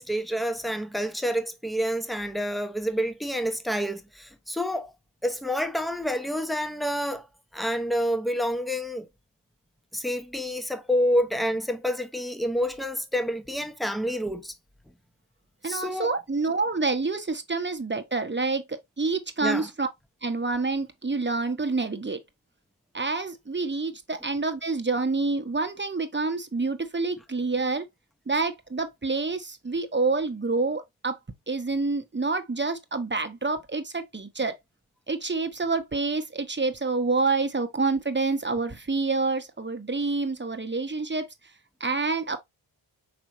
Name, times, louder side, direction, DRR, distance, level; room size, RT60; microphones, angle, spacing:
voice 1, 0.0-4.9 5.2-7.3 7.5-9.1 9.9-14.5 15.6-16.1 19.4-19.7, equal, ahead, 0.8 m, -28 dB
voice 2, 15.6-19.9 20.2-22.2 22.9-27.9 28.3-31.2 31.5-34.5 35.1-41.3 41.8-42.4, right 3 dB, 25° right, 1.0 m, -27 dB
5.1 x 3.4 x 3.0 m
cardioid pair, 45°, 47 cm